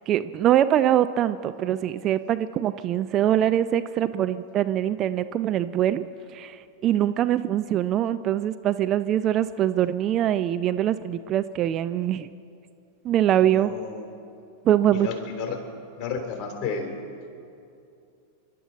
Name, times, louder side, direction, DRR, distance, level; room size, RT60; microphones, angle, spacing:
voice 1, 0.1-12.3 13.0-13.7 14.6-15.1, right 11 dB, 30° right, 11 dB, 0.4 m, -23 dB
voice 2, 13.4-14.1 14.9-15.6 15.9-16.9, left 5 dB, 35° left, 3 dB, 3.3 m, -32 dB
29.0 x 12.0 x 4.2 m, 2.5 s
figure-of-eight pair, 90°, 0 cm